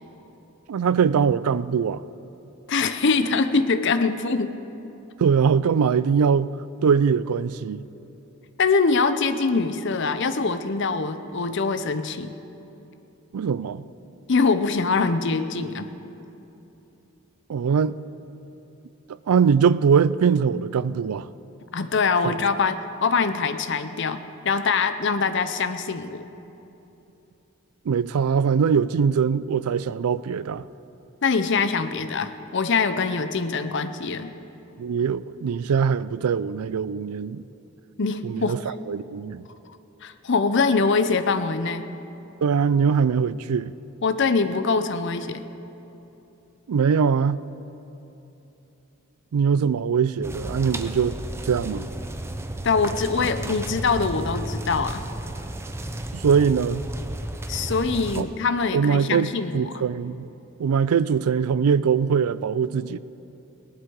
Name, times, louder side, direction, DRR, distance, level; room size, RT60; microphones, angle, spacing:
voice 1, 0.7-2.0 5.2-6.5 6.8-7.8 13.3-13.8 17.5-18.0 19.3-21.3 22.2-22.4 27.9-30.6 34.8-37.4 38.2-39.5 42.4-43.7 46.7-47.4 49.3-51.2 51.5-51.9 56.1-56.9 58.1-58.3 58.7-60.3 60.6-63.0, right 6 dB, 90° right, 0.4 m, -22 dB
voice 2, 2.7-4.6 8.6-12.3 14.3-15.9 21.7-26.2 31.2-34.3 38.0-38.6 40.0-41.8 44.0-45.4 52.6-55.0 57.5-59.8, left 4 dB, 55° left, 0.6 m, -23 dB
sound 1, 50.2-58.2, right 1 dB, 10° right, 0.5 m, -33 dB
18.0 x 11.0 x 4.7 m
head